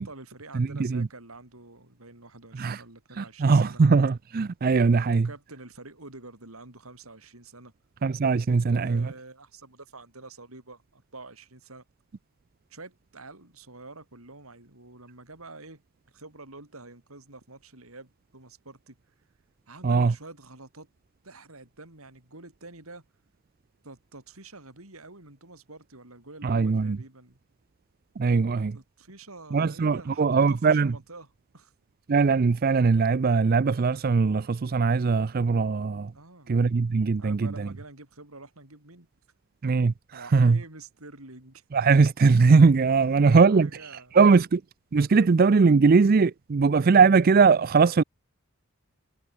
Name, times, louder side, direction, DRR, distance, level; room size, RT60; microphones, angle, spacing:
voice 1, 0.0-3.8 5.1-7.7 8.6-11.8 12.7-15.8 16.1-19.0 19.7-20.9 21.2-23.0 23.8-27.4 28.7-31.3 31.5-31.7 36.1-36.5 37.2-39.1 40.1-41.6 42.9-43.2 43.5-44.2 45.2-45.3, right 2 dB, 85° right, 6.1 m, -47 dB
voice 2, 0.5-1.1 2.5-2.8 3.2-5.3 8.0-9.1 19.8-20.1 26.4-27.0 28.2-28.8 29.5-30.9 32.1-36.1 36.5-37.7 39.6-40.6 41.7-44.6 44.9-48.0, right 4 dB, 45° right, 0.4 m, -21 dB
head